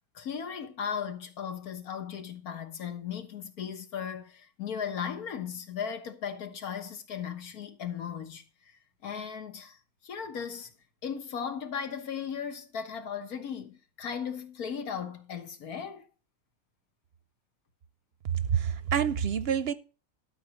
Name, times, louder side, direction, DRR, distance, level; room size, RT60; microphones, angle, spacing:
voice 1, 0.1-10.7 11.0-16.1, left 7 dB, 85° left, 1.8 m, -37 dB
voice 2, 18.3-19.7, right 8 dB, 55° right, 0.7 m, -27 dB
12.0 x 4.6 x 7.0 m
omnidirectional pair, 1.5 m